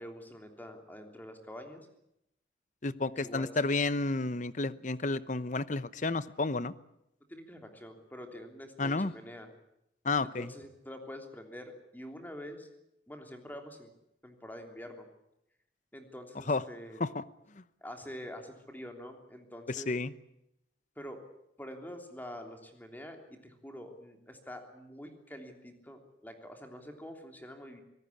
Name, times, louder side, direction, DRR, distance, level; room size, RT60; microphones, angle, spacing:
voice 1, 0.0-1.9 3.1-3.6 7.3-9.5 10.2-12.7 13.1-13.9 14.2-15.1 15.9-17.1 17.8-19.9 21.0-21.2 21.6-27.8, equal, 10° left, 4 dB, 3.2 m, -46 dB
voice 2, 2.8-6.7 8.8-9.1 10.0-10.5 16.5-16.6 17.0-17.2 19.9-20.1, left 3 dB, 45° left, 16 dB, 0.9 m, -31 dB
25.0 x 18.0 x 8.5 m, 0.82 s
head